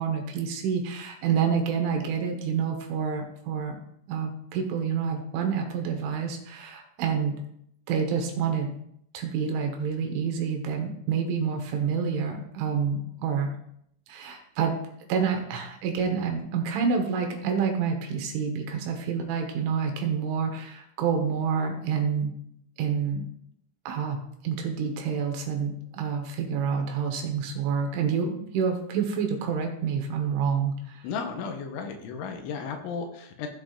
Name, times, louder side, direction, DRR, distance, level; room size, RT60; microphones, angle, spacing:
voice 1, 0.0-3.8 4.1-7.4 7.9-8.7 9.1-13.5 14.1-14.8 15.1-22.3 22.8-23.2 23.9-24.2 24.4-31.0, right 6 dB, 75° right, 3 dB, 3.6 m, -28 dB
voice 2, 31.0-33.5, left 5 dB, 85° left, 4 dB, 3.3 m, -34 dB
16.5 x 7.1 x 2.5 m, 0.73 s
omnidirectional pair, 5.7 m